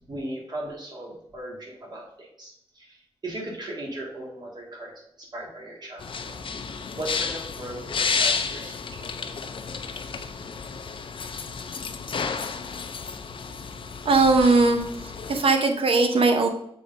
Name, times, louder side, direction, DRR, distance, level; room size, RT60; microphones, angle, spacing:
voice 1, 0.1-3.0 3.2-4.9 5.2-6.4 6.7-9.4, right 1 dB, 40° right, -1 dB, 1.9 m, -37 dB
sound 1, 6.0-15.4, left 5 dB, 55° left, 0.5 m, -31 dB
voice 2, 14.0-16.5, right 3 dB, 60° right, 5 dB, 0.9 m, -20 dB
6.8 x 3.8 x 5.3 m, 0.72 s
wide cardioid pair, 180°, 11 cm